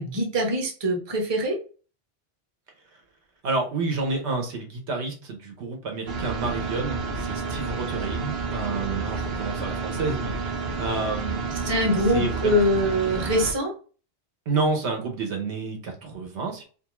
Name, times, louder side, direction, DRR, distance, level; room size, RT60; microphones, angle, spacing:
voice 1, 0.0-1.6 11.6-13.7, equal, 30° right, 0 dB, 0.6 m, -23 dB
voice 2, 3.4-12.6 14.5-16.6, right 3 dB, 85° right, 3 dB, 1.1 m, -30 dB
sound 1, 6.1-13.5, right 4 dB, 65° right, 0.9 m, -30 dB
2.5 x 2.4 x 3.0 m, 0.37 s
omnidirectional pair, 1.1 m